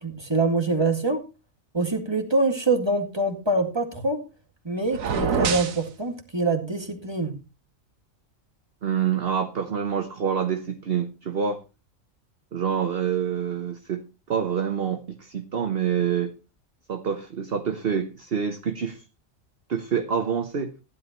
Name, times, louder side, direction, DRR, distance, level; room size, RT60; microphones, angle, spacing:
voice 1, 0.0-1.2 1.7-4.2 4.6-7.4, right 2 dB, 20° right, 5 dB, 2.1 m, -25 dB
sound 1, 4.9-5.8, right 6 dB, 90° right, 1.5 m, -25 dB
voice 2, 8.8-11.6 12.5-16.3 16.9-19.0 19.7-20.7, right 7 dB, 50° right, 8 dB, 1.1 m, -27 dB
15.5 x 11.0 x 3.0 m, 0.29 s
omnidirectional pair, 1.4 m